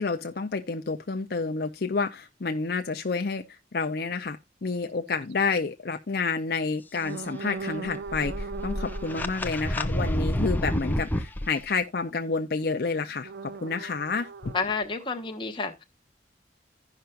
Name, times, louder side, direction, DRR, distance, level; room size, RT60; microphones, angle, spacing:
voice 1, 0.0-3.4 3.7-14.5, left 4 dB, 55° left, 0.6 m, -29 dB
sound 1, 4.0-4.1 5.1-5.3 6.9-9.4 13.2-15.3, right 5 dB, 70° right, 0.4 m, -39 dB
sound 2, 7.9-11.4, equal, 10° left, 0.5 m, -28 dB
voice 2, 14.5-15.8, left 4 dB, 25° left, 1.1 m, -30 dB
16.0 x 5.7 x 2.4 m
head